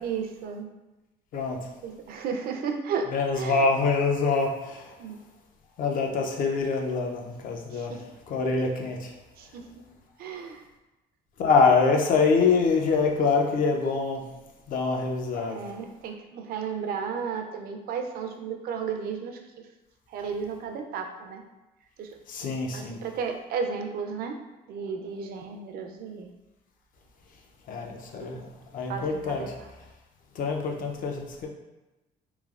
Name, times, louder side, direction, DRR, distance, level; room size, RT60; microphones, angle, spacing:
voice 1, 0.0-0.7 1.8-3.7 5.0-5.2 7.7-8.0 9.4-9.6 10.2-10.6 15.5-19.7 20.1-21.4 22.0-22.2 22.7-24.4 24.7-26.3 28.2-28.3 28.9-29.7, right 6 dB, 65° right, 5 dB, 0.4 m, -34 dB
voice 2, 1.3-1.6 3.1-4.9 5.8-7.9 8.3-9.1 11.4-14.2 14.7-15.6 22.3-23.0 27.7-29.4 30.4-31.5, left 4 dB, 55° left, 2 dB, 0.5 m, -25 dB
3.1 x 2.0 x 2.3 m, 1.1 s
cardioid pair, 110°, 17 cm